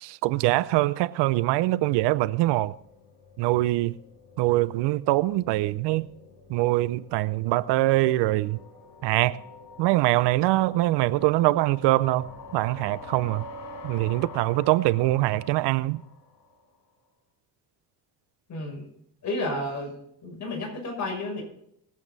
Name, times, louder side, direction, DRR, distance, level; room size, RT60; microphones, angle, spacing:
voice 1, 0.0-2.7 3.4-4.0 4.4-6.1 6.5-8.6 9.0-9.4 9.8-13.4 13.8-16.0, right 17 dB, 80° right, 0.7 m, -23 dB
sound 1, 1.9-16.7, left 3 dB, 70° left, 6.7 m, -47 dB
voice 2, 18.5-18.9 19.2-19.9 20.2-21.4, left 2 dB, 45° left, 6.0 m, -31 dB
20.5 x 8.3 x 4.0 m
cardioid pair, 135°, 41 cm